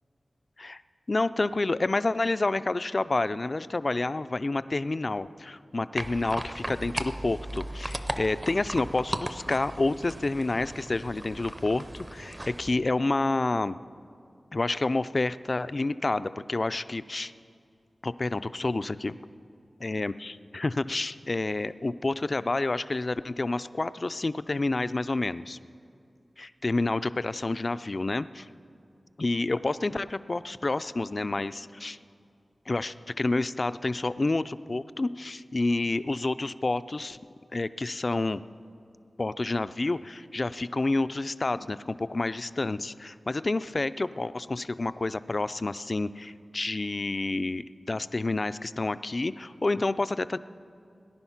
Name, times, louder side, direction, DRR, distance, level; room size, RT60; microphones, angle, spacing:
voice 1, 1.1-13.8 14.5-17.3 18.0-19.1 19.8-25.6 26.4-28.5 29.2-32.0 32.7-37.2 37.5-38.4 39.2-50.4, left 2 dB, 45° left, 14 dB, 0.3 m, -29 dB
sound 1, 6.0-12.8, right 1 dB, 25° right, 0.6 m, -37 dB
18.5 x 10.5 x 5.8 m, 2.4 s
wide cardioid pair, 85°, 0 cm